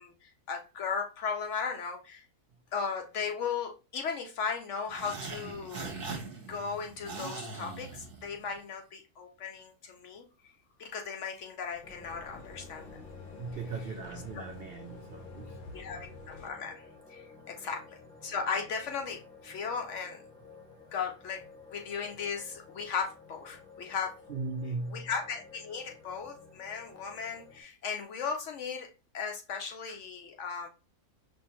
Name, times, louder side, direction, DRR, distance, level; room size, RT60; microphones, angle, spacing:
voice 1, 0.0-2.2 2.7-5.9 6.5-10.3 10.8-13.0 15.7-20.2 20.9-21.4 21.7-24.1 24.9-30.7, left 6 dB, 70° left, 0.7 m, -36 dB
sound 1, 4.9-8.6, right 4 dB, 45° right, 1.0 m, -41 dB
sound 2, 11.6-16.7, left 3 dB, 85° left, 1.2 m, -50 dB
sound 3, 11.8-27.6, left 4 dB, 5° left, 0.6 m, -53 dB
voice 2, 13.4-15.9 24.3-25.1, right 4 dB, 80° right, 0.5 m, -38 dB
5.3 x 2.6 x 2.9 m
omnidirectional pair, 1.6 m